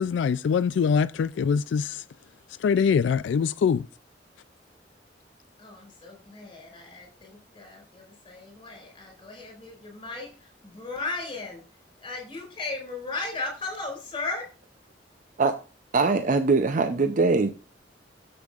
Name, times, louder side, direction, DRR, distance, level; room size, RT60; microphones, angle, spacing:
voice 1, 0.0-2.0 2.6-3.8, left 6 dB, 75° left, 0.3 m, -23 dB
voice 2, 5.6-11.6 12.0-14.5, left 3 dB, 25° left, 4.9 m, -36 dB
voice 3, 15.9-17.5, right 4 dB, 45° right, 0.5 m, -22 dB
11.5 x 7.8 x 2.4 m
head